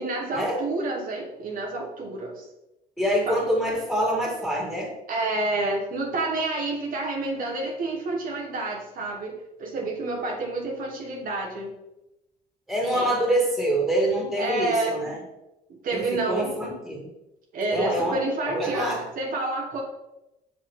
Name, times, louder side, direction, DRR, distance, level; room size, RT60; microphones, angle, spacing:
voice 1, 0.0-2.5 3.3-3.4 5.1-11.7 12.9-13.1 14.3-15.2 15.8-16.5 17.5-19.8, right 2 dB, 55° right, 0 dB, 1.2 m, -29 dB
voice 2, 3.0-4.9 12.7-15.2 15.9-17.1 17.7-18.2 18.5-19.0, right 1 dB, ahead, -2 dB, 2.1 m, -25 dB
5.8 x 5.1 x 3.6 m, 0.93 s
cardioid pair, 110°, 17 cm